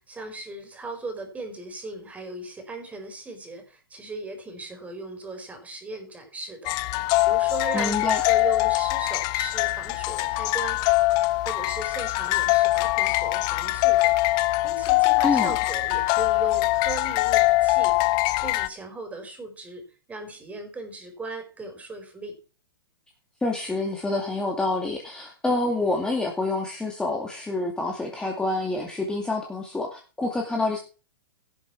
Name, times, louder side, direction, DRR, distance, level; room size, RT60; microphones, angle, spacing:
voice 1, 0.0-11.0 11.4-19.8 20.1-22.3, right 2 dB, 10° right, 5 dB, 4.8 m, -38 dB
sound 1, 6.6-18.7, left 19 dB, 35° left, 0.7 m, -23 dB
voice 2, 7.7-8.2 15.2-15.5 23.4-30.8, left 2 dB, 5° left, 1 dB, 2.3 m, -27 dB
17.0 x 7.5 x 4.7 m, 0.35 s
hypercardioid pair, 130°, 12 cm